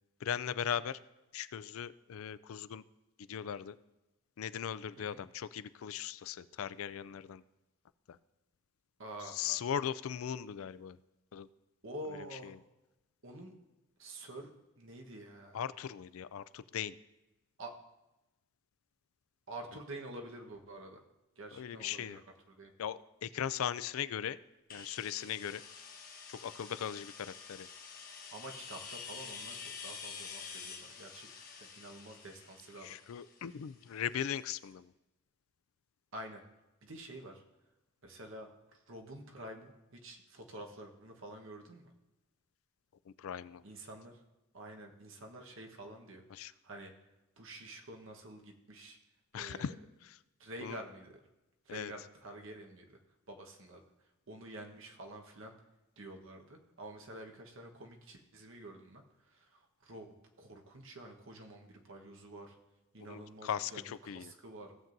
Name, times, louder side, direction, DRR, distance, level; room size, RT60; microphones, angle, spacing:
voice 1, 0.2-1.0 1.3-2.8 3.2-3.8 4.4-7.4 8.1-8.2 9.3-11.0 11.3-11.5 12.4-12.6 15.5-17.0 21.5-22.2 22.8-24.4 24.7-25.6 26.3-27.7 32.8-34.9 43.1-43.6 46.3-46.5 49.3-49.7 50.0-50.2 50.6-50.8 51.7-51.9 63.0-64.3, left 9 dB, 70° left, 16 dB, 0.4 m, -39 dB
voice 2, 9.0-9.6 11.8-12.5 13.2-13.5 14.0-14.5 14.8-15.6 17.6-17.7 19.5-21.0 21.4-22.2 22.5-22.7 28.3-31.3 31.6-33.0 36.1-36.4 36.8-37.4 38.0-41.8 43.6-44.2 44.5-46.9 47.4-49.0 49.4-49.7 50.4-51.2 51.6-53.0 53.3-53.8 54.3-55.5 56.0-62.6 62.9-64.7, right 1 dB, 65° right, 2 dB, 1.2 m, -48 dB
sound 1, 24.7-34.3, left 6 dB, 40° left, 1.3 m, -48 dB
16.5 x 7.4 x 2.6 m, 1.0 s
head